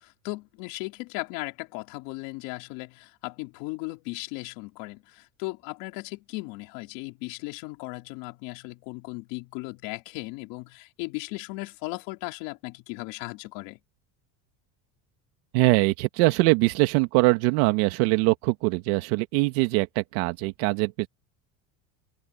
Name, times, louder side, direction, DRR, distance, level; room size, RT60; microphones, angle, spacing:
voice 1, 0.2-13.8, left 24 dB, 75° left, 3.9 m, -37 dB
voice 2, 15.5-21.1, right 22 dB, 85° right, 1.9 m, -22 dB
cardioid pair, 145°, 43 cm